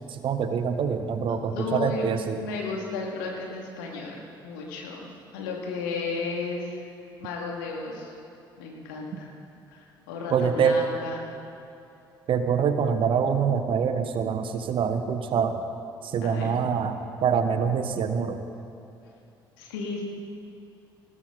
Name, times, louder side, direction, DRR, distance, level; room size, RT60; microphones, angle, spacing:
voice 1, 0.1-2.4 10.3-10.8 12.3-15.6 16.0-18.4, right 6 dB, 45° right, 8 dB, 1.2 m, -25 dB
voice 2, 1.5-2.1 2.4-6.9 7.2-8.1 8.6-9.3 9.7-11.2 16.2-16.6 19.6-20.0, left 4 dB, 70° left, -1 dB, 2.7 m, -34 dB
19.5 x 17.5 x 4.2 m, 2.8 s
figure-of-eight pair, 50°, 12 cm